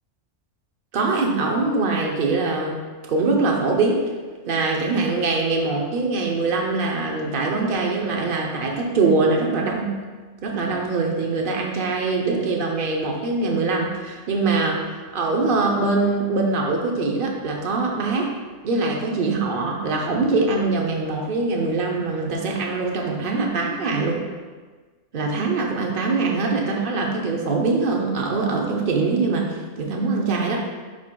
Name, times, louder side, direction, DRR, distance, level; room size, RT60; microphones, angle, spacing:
voice 1, 0.9-2.7 3.1-4.0 4.5-9.9 10.4-18.3 18.6-24.2 25.1-30.6, right 3 dB, 50° right, 0 dB, 1.0 m, -23 dB
10.5 x 4.4 x 2.3 m, 1.4 s
omnidirectional pair, 1.2 m